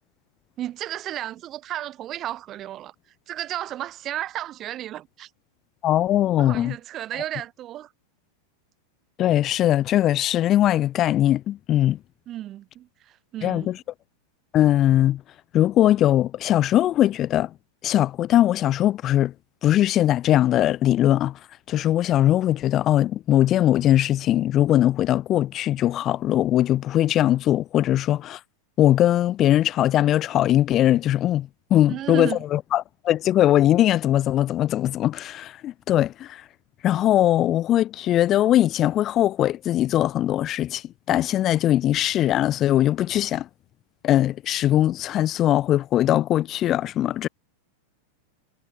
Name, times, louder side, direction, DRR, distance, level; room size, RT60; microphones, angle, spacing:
voice 1, 0.6-2.9 3.3-5.3 6.4-7.9 12.3-13.7 31.9-32.4, right 12 dB, 30° right, 4.9 m, -33 dB
voice 2, 5.8-6.7 9.2-12.0 13.4-13.8 14.5-15.2 15.5-17.5 17.8-19.3 19.6-21.4 21.7-28.4 28.8-36.4 36.8-40.8 41.1-43.5 44.0-47.3, left 12 dB, 30° left, 4.4 m, -20 dB
figure-of-eight pair, 90°, 0 cm